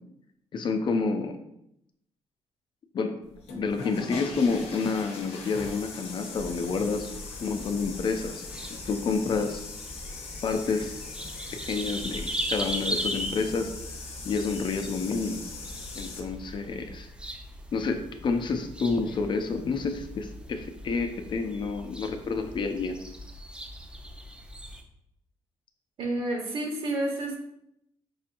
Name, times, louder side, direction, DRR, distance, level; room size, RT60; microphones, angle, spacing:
voice 1, 0.5-1.4 2.9-3.1 3.6-8.4 8.7-9.6 10.4-10.9 11.5-13.7 14.2-15.4 15.9-17.1 17.7-23.0, left 4 dB, 50° left, 7 dB, 0.5 m, -29 dB
sound 1, 3.3-16.2, left 4 dB, 90° left, 0.7 m, -41 dB
sound 2, 6.3-24.8, equal, 10° right, 0.5 m, -39 dB
voice 2, 26.0-27.4, right 1 dB, 65° right, 0 dB, 1.3 m, -30 dB
5.4 x 2.8 x 2.5 m, 0.79 s
cardioid pair, 100°, 10 cm